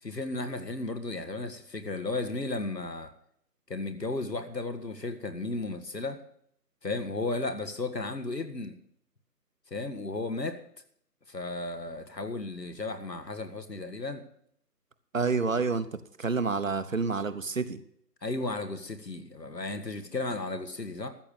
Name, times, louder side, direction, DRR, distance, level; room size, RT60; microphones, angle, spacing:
voice 1, 0.0-3.1 3.7-6.2 6.8-8.7 9.7-10.6 11.3-14.2 18.2-21.1, left 2 dB, 80° left, 8 dB, 1.8 m, -34 dB
voice 2, 15.1-17.8, right 4 dB, 55° right, 12 dB, 1.0 m, -29 dB
13.5 x 7.4 x 6.6 m, 0.68 s
figure-of-eight pair, 155°, 49 cm